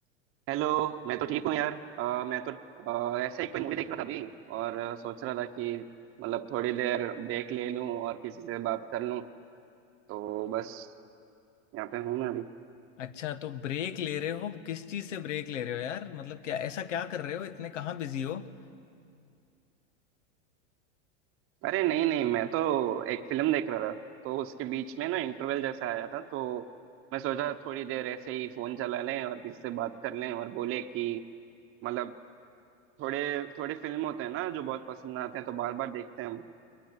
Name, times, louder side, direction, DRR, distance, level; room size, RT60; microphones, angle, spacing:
voice 1, 0.5-5.8 6.2-9.2 10.1-10.9 11.7-12.5 21.6-24.0 24.2-26.7 27.1-31.2 31.8-32.1 33.0-36.4, right 12 dB, 35° right, 7 dB, 0.9 m, -32 dB
voice 2, 13.0-18.5, left 10 dB, 90° left, 13 dB, 1.3 m, -35 dB
22.0 x 21.0 x 9.6 m, 2.4 s
supercardioid pair, 120°, 36 cm